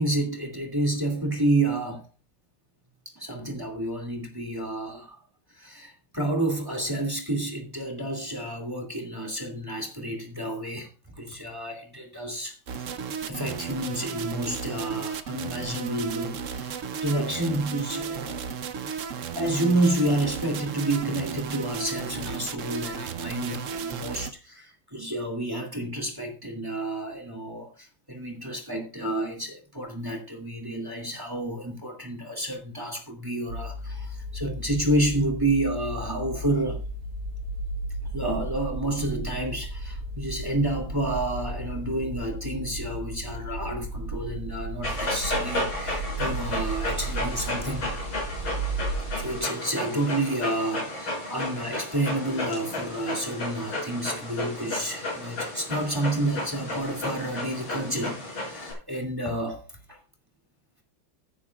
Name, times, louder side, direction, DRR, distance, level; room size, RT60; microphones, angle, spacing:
voice 1, 0.0-2.1 3.2-5.2 5.6-10.9 11.2-12.5 13.2-18.4 19.3-36.8 38.1-47.9 49.2-60.0, right 1 dB, 10° right, 2.3 m, -29 dB
sound 1, 12.7-24.3, right 6 dB, 70° right, 0.7 m, -34 dB
sound 2, 33.5-49.4, right 1 dB, 90° right, 2.4 m, -34 dB
Dog, 44.8-58.7, left 1 dB, 65° left, 6.9 m, -33 dB
15.5 x 10.0 x 2.4 m
omnidirectional pair, 2.4 m